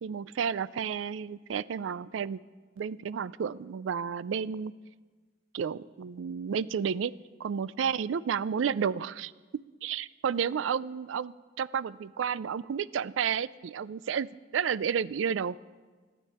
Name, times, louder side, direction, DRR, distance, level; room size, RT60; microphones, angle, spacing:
voice 1, 0.0-2.4 2.8-4.7 5.5-7.1 7.4-9.3 9.8-14.3 14.5-15.6, right 7 dB, 85° right, 19 dB, 0.4 m, -31 dB
25.5 x 9.1 x 4.2 m, 1.4 s
head